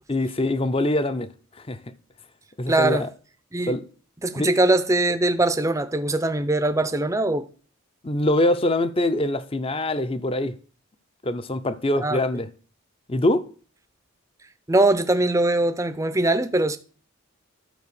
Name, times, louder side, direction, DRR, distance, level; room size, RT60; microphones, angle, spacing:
voice 1, 0.1-1.9 2.6-3.1 3.7-3.9 4.3-4.5 8.0-10.6 11.2-12.5 13.1-13.5, left 1 dB, 25° left, 0.6 m, -24 dB
voice 2, 2.7-3.1 3.5-3.8 4.2-7.5 12.0-12.2 14.7-16.8, right 2 dB, 15° right, 0.6 m, -21 dB
12.5 x 4.3 x 6.9 m
head